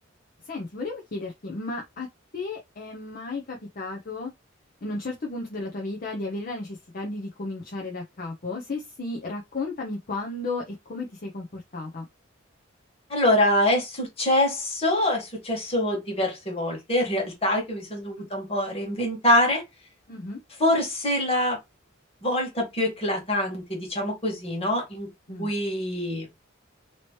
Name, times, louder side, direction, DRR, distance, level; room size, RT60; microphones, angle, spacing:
voice 1, 0.5-2.1 2.3-4.3 4.8-12.0 18.2-18.3 20.1-20.4 25.3-25.5, left 3 dB, 45° left, 0.6 m, -34 dB
voice 2, 13.1-19.6 20.6-21.6 22.2-25.1 25.4-26.3, left 1 dB, 30° left, 1.5 m, -25 dB
2.9 x 2.9 x 3.0 m
head